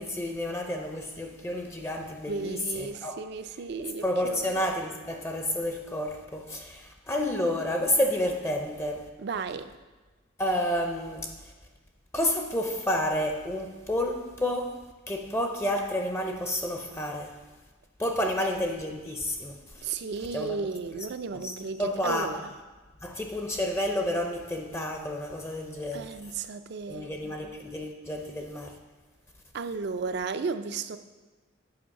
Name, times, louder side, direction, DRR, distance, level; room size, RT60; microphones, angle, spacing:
voice 1, 0.0-3.2 4.0-9.1 10.4-11.3 12.1-14.8 15.1-17.4 18.0-19.9 20.3-20.6 21.4-21.5 21.8-22.3 23.0-26.1 26.9-28.8, left 1 dB, 10° left, 3 dB, 0.5 m, -30 dB
voice 2, 2.3-4.6 9.2-9.7 18.2-18.3 19.8-22.5 25.9-27.1 29.5-31.0, right 4 dB, 55° right, 11 dB, 0.4 m, -34 dB
8.6 x 4.7 x 5.7 m, 1.3 s
head